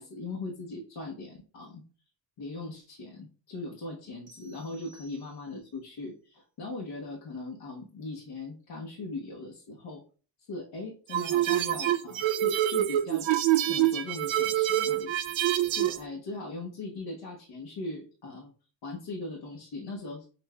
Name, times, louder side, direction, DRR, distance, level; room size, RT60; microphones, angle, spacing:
voice 1, 0.0-1.8 2.4-10.0 10.4-13.3 13.6-15.1 15.7-18.5 18.8-20.3, left 2 dB, 65° left, -2 dB, 1.0 m, -39 dB
sound 1, 4.3-5.8, right 2 dB, 65° right, 1.8 m, -58 dB
sound 2, 11.1-16.0, right 13 dB, 80° right, 0.5 m, -26 dB
6.7 x 2.5 x 2.2 m, 0.39 s
cardioid pair, 105°, 45 cm